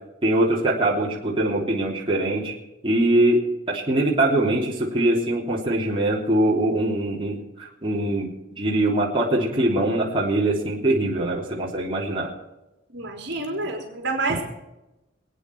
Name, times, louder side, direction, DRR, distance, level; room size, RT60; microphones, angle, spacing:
voice 1, 0.2-2.5 2.8-3.4 3.7-12.3, right 1 dB, 25° right, -4 dB, 3.3 m, -22 dB
voice 2, 12.9-14.4, right 3 dB, 60° right, 1 dB, 3.6 m, -28 dB
26.5 x 9.4 x 4.7 m, 0.97 s
head